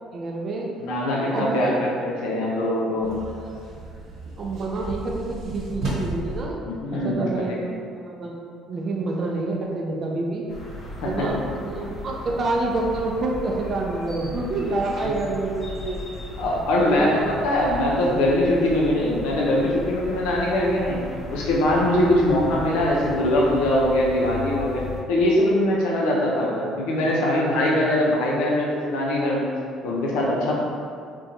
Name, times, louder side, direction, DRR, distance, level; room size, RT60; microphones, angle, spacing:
voice 1, 0.1-0.7 1.3-1.8 4.4-6.6 6.9-8.4 8.7-10.4 11.0-11.4 11.6-16.1 16.4-17.3, right 2 dB, 50° right, -1 dB, 0.4 m, -28 dB
voice 2, 0.8-3.1 6.7-7.7 11.0-11.3 15.0-15.1 16.4-21.0 21.3-29.5 29.8-30.5, left 1 dB, 80° left, -3 dB, 0.5 m, -22 dB
sound 1, 3.0-6.4, right 2 dB, 70° right, 0.9 m, -33 dB
sound 2, 10.5-25.0, left 1 dB, 45° left, 0.7 m, -37 dB
2.7 x 2.2 x 2.5 m, 2.3 s
hypercardioid pair, 65°, 0 cm